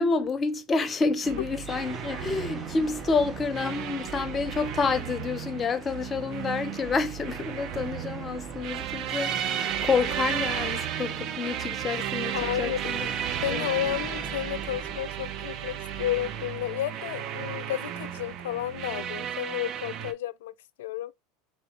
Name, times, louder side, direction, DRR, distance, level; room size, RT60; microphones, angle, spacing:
voice 1, 0.0-13.1 13.5-13.7, left 4 dB, 30° left, 0.7 m, -29 dB
sound 1, 1.2-20.1, right 9 dB, 50° right, 0.6 m, -34 dB
sound 2, 1.7-15.0, equal, 5° right, 2.3 m, -47 dB
voice 2, 12.3-12.8 13.4-21.1, left 13 dB, 75° left, 0.3 m, -32 dB
4.1 x 3.0 x 3.0 m
hypercardioid pair, 85°, 0 cm